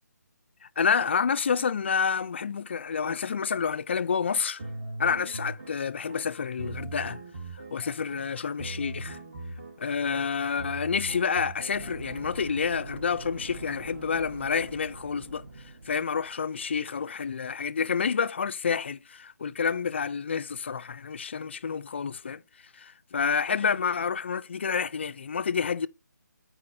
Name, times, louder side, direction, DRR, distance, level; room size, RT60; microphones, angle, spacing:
voice 1, 0.8-4.6 5.0-7.2 7.7-9.2 9.8-15.4 15.9-22.4 22.8-25.9, left 6 dB, 40° left, 0.3 m, -29 dB
sound 1, 4.6-12.5, right 2 dB, 30° right, 1.3 m, -41 dB
sound 2, 11.7-16.6, right 2 dB, 60° right, 1.0 m, -43 dB
11.5 x 4.7 x 2.6 m
figure-of-eight pair, 165°, 10 cm